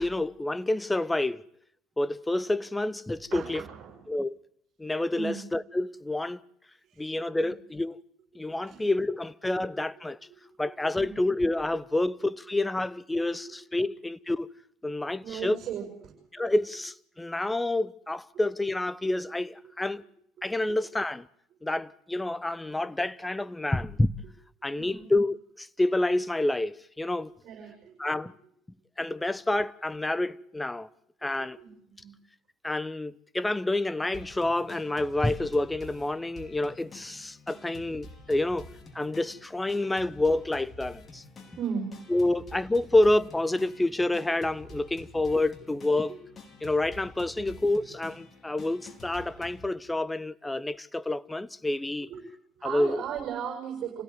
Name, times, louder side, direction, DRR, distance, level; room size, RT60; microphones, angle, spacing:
voice 1, 0.0-1.4 2.0-3.6 4.1-4.4 4.8-6.4 7.0-8.0 8.3-10.2 10.6-14.5 14.8-15.6 16.3-20.0 20.4-21.3 21.6-24.1 24.6-27.3 28.0-28.3 29.0-30.9 31.2-31.6 32.6-38.7 38.9-41.2 42.1-46.1 46.6-52.1 52.6-53.0, left 2 dB, 10° left, 0.9 m, -28 dB
voice 2, 3.3-4.0 5.1-5.4 6.8-7.5 8.7-8.8 10.3-10.4 10.7-11.2 15.2-16.1 20.4-20.5 24.7-25.1 27.4-28.1 31.2-32.1 39.7-39.8 41.5-41.9 42.3-42.4 46.1-46.2 47.3-47.6 52.0-52.2 52.6-54.0, right 7 dB, 50° right, 7.0 m, -38 dB
sound 1, 34.1-49.7, left 2 dB, 30° left, 4.7 m, -49 dB
27.0 x 16.5 x 9.2 m
hypercardioid pair, 75°, 0 cm